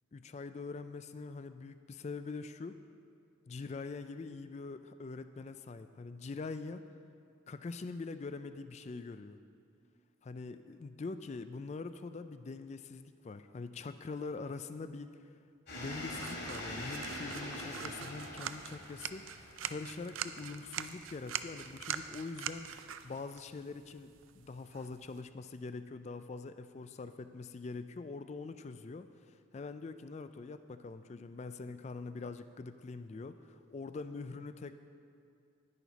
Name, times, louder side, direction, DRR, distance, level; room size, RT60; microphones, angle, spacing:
voice 1, 0.1-2.8 3.5-6.8 7.5-9.4 10.2-15.1 15.8-34.8, left 4 dB, 30° left, 11 dB, 0.3 m, -44 dB
sound 1, 15.7-22.1, left 1 dB, 50° left, 2.7 m, -44 dB
sound 2, 16.1-25.2, right 9 dB, 75° right, 0.4 m, -44 dB
10.5 x 10.5 x 4.1 m, 2.4 s
head